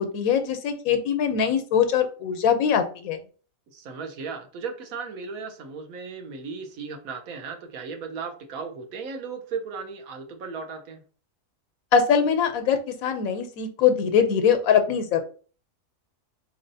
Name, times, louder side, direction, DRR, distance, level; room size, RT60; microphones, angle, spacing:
voice 1, 0.0-3.2 11.9-15.2, left 7 dB, 90° left, 7 dB, 1.1 m, -22 dB
voice 2, 3.7-11.0, right 5 dB, 85° right, 5 dB, 1.2 m, -36 dB
4.1 x 3.1 x 2.6 m, 0.38 s
omnidirectional pair, 1.5 m